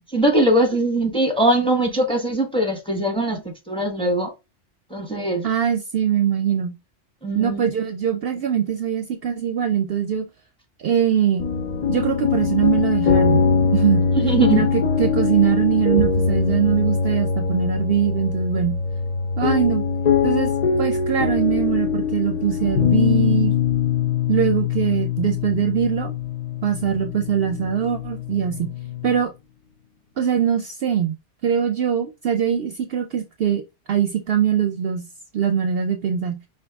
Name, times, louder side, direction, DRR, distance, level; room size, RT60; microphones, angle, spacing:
voice 1, 0.1-4.3 4.9-5.5 7.2-7.7 14.1-14.7, right 1 dB, 5° left, 1.0 m, -21 dB
voice 2, 5.4-6.7 7.4-10.2 10.8-11.4 11.9-13.4 13.7-14.1 14.5-18.8 19.4-19.8 20.2-20.5 20.8-23.5 24.3-26.1 26.6-28.7 29.0-29.3 30.2-31.2 31.4-33.6 33.9-35.0 35.3-36.4, right 9 dB, 65° right, 0.7 m, -22 dB
sound 1, 11.4-29.2, left 6 dB, 45° left, 0.6 m, -22 dB
5.1 x 2.7 x 3.4 m
omnidirectional pair, 1.2 m